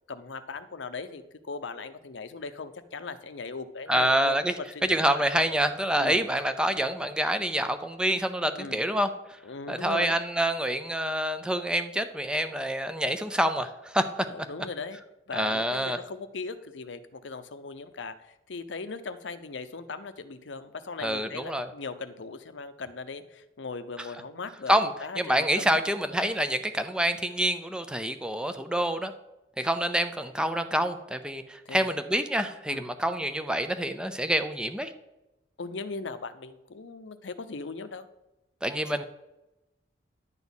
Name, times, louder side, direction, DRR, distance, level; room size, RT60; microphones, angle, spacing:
voice 1, 0.1-4.4 4.7-5.2 6.0-6.2 8.6-8.8 9.4-10.2 14.3-15.0 15.3-24.7 25.0-25.8 31.6-31.9 32.7-32.8 35.6-38.1, left 4 dB, 90° left, 11 dB, 0.7 m, -39 dB
voice 2, 3.9-4.5 4.8-9.4 9.7-14.3 15.3-16.0 21.0-21.7 24.7-24.9 25.2-29.1 29.6-34.9 38.6-39.0, right 1 dB, 5° right, 9 dB, 0.6 m, -27 dB
10.5 x 4.1 x 7.1 m, 0.96 s
head